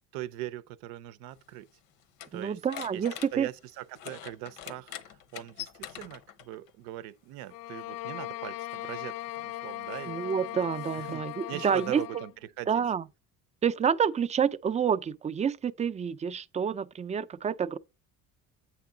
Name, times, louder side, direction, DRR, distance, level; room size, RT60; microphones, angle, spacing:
voice 1, 0.1-1.7 2.3-2.6 2.9-3.0 3.3-12.3 12.6-12.8, right 14 dB, 90° right, 0.6 m, -41 dB
sound 1, 1.3-6.7 7.8-7.9 8.7-12.1, left 11 dB, 90° left, 0.9 m, -46 dB
voice 2, 2.3-3.5 10.1-12.0 12.7-13.0 13.6-17.8, right 7 dB, 20° right, 0.3 m, -28 dB
sound 2, 7.5-12.3, left 15 dB, 70° left, 0.5 m, -39 dB
8.3 x 5.8 x 3.8 m
cardioid pair, 100°, 35 cm